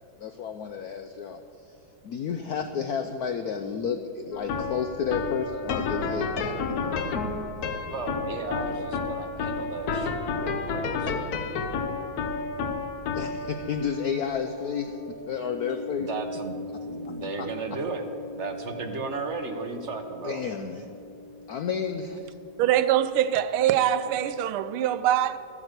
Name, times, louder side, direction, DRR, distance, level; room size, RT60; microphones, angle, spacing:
voice 1, 0.2-1.4 2.0-7.1 13.1-16.1 17.1-17.5 20.2-20.9 21.5-22.2, left 6 dB, 80° left, 7 dB, 0.8 m, -31 dB
sound 1, 4.3-21.5, left 4 dB, 60° left, 1.1 m, -33 dB
voice 2, 7.9-11.4 16.0-18.1 18.3-20.4, right 4 dB, 55° right, 5 dB, 0.8 m, -35 dB
voice 3, 22.6-25.4, right 11 dB, 90° right, 13 dB, 1.5 m, -23 dB
13.5 x 8.8 x 8.0 m, 2.8 s
omnidirectional pair, 2.3 m